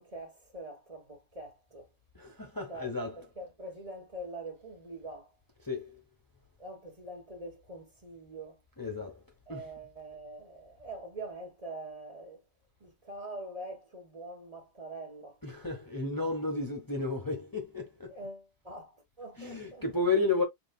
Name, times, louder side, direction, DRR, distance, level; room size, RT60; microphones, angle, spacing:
voice 1, 0.0-1.9 2.4-5.3 6.6-8.6 9.5-12.4 12.8-15.4 18.1-20.0, right 2 dB, 35° right, 1.4 m, -44 dB
voice 2, 2.1-3.3 5.6-5.8 8.8-9.2 9.5-9.7 15.4-18.1 19.4-20.4, left 3 dB, 20° left, 0.9 m, -32 dB
5.2 x 3.3 x 2.3 m
omnidirectional pair, 1.1 m